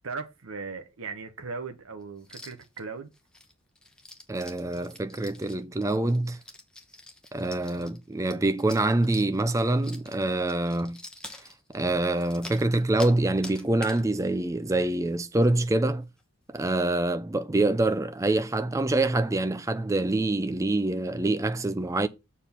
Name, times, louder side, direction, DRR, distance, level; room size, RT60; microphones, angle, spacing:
voice 1, 0.0-3.1, right 4 dB, 85° right, 1.0 m, -38 dB
sound 1, 2.2-2.8 3.1-13.2 13.4-14.0 14.4-14.5 14.8-15.2 15.4-15.5 16.0-16.2, left 1 dB, 5° left, 1.0 m, -46 dB
voice 2, 4.3-6.4 7.3-11.0 11.7-16.1 16.5-22.1, right 2 dB, 15° right, 0.4 m, -25 dB
7.1 x 4.2 x 5.6 m
head